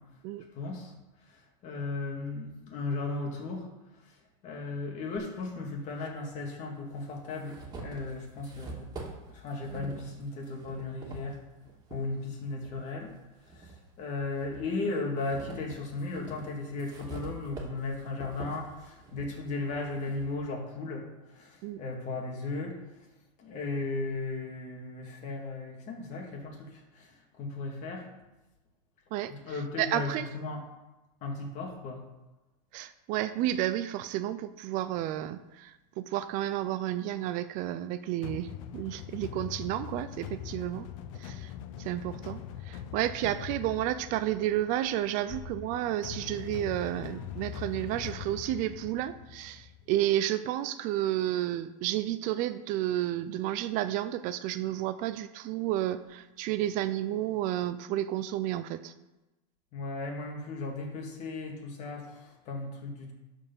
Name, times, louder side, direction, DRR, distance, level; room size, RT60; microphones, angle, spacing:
voice 1, 0.5-0.9 1.3-3.7 4.4-8.9 9.3-11.5 11.9-13.1 13.5-22.8 23.4-27.1 27.4-28.1 29.2-30.6 31.2-32.1 43.2-43.3 59.7-63.1, left 3 dB, 40° left, 1 dB, 2.2 m, -36 dB
sound 1, 5.2-5.3 6.3-6.4 6.9-12.0 12.6-13.8 14.2-20.3, right 3 dB, 20° right, 2.3 m, -45 dB
voice 2, 29.1-30.3 32.7-40.9 41.2-41.5 41.8-58.9, right 13 dB, 45° right, 12 dB, 0.5 m, -31 dB
sound 2, 38.2-50.1, left 10 dB, 65° left, 0.7 m, -42 dB
12.0 x 4.5 x 5.4 m, 1.0 s
supercardioid pair, 135°, 18 cm